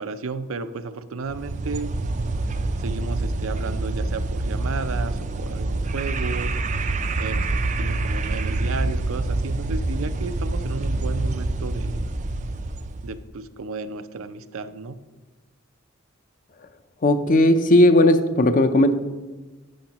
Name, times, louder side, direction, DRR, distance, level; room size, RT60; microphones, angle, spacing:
voice 1, 0.0-1.9 2.8-6.5 7.2-11.9 13.0-15.0, right 4 dB, 80° right, 10 dB, 0.5 m, -33 dB
sound 1, 1.3-13.2, right 2 dB, 35° right, 0.4 m, -26 dB
voice 2, 17.0-18.9, left 1 dB, 40° left, 9 dB, 0.6 m, -16 dB
11.5 x 8.8 x 2.9 m, 1.2 s
head